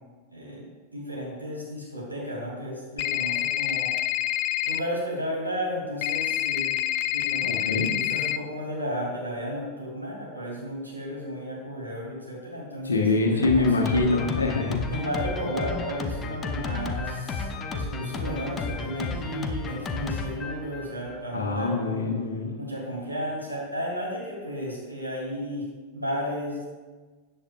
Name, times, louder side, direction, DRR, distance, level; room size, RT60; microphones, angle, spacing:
voice 1, 0.3-3.9 4.6-6.7 7.1-7.6 7.9-14.2 14.9-22.1 22.6-25.7 25.9-26.6, equal, 90° right, -5 dB, 3.0 m, -33 dB
sound 1, 3.0-4.8 6.0-8.4, left 13 dB, 45° left, 0.3 m, -27 dB
voice 2, 7.4-7.9 12.8-14.8 21.3-22.5, left 3 dB, 75° left, 3 dB, 1.4 m, -24 dB
Drum kit, 13.4-21.2, left 4 dB, 25° left, 0.8 m, -33 dB
13.5 x 8.6 x 2.5 m, 1.4 s
figure-of-eight pair, 90°, 0 cm